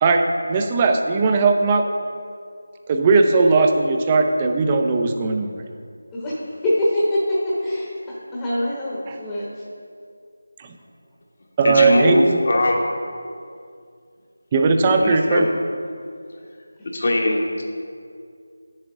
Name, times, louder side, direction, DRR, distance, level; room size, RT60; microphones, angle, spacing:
voice 1, 0.0-1.9 2.9-5.6 9.1-9.2 10.6-10.7 11.6-12.4 14.5-15.5, right 3 dB, 20° right, 4 dB, 0.5 m, -18 dB
voice 2, 6.1-9.5, left 1 dB, 15° left, -6 dB, 1.0 m, -24 dB
voice 3, 11.6-12.9 15.0-15.4 16.9-17.6, left 1 dB, 50° left, 1 dB, 1.2 m, -20 dB
9.0 x 7.4 x 3.7 m, 2.3 s
figure-of-eight pair, 165°, 0 cm